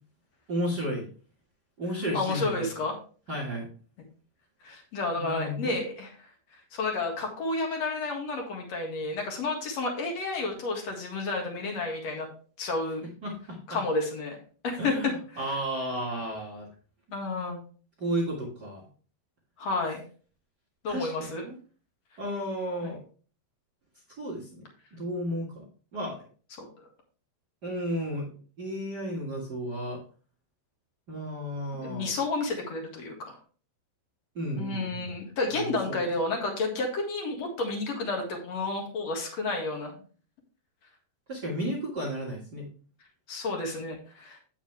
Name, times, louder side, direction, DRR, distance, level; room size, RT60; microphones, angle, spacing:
voice 1, 0.5-1.1 1.8-2.7 3.3-3.7 5.1-5.8 13.2-13.8 14.8-16.7 18.0-18.9 20.9-21.1 21.4-21.6 22.2-23.0 24.2-24.6 24.9-25.6 25.9-26.2 27.6-28.3 28.6-30.0 31.1-32.1 34.3-35.2 35.5-36.1 41.3-42.7, equal, 60° right, -2 dB, 1.0 m, -33 dB
voice 2, 2.1-3.0 4.6-6.1 6.7-12.3 12.6-13.1 13.7-14.4 14.6-15.4 17.1-17.6 19.6-20.0 20.8-21.4 26.6-26.7 31.8-33.4 34.6-40.0 43.3-44.4, left 3 dB, 50° left, 1 dB, 2.4 m, -31 dB
8.8 x 7.1 x 3.3 m, 0.40 s
omnidirectional pair, 4.9 m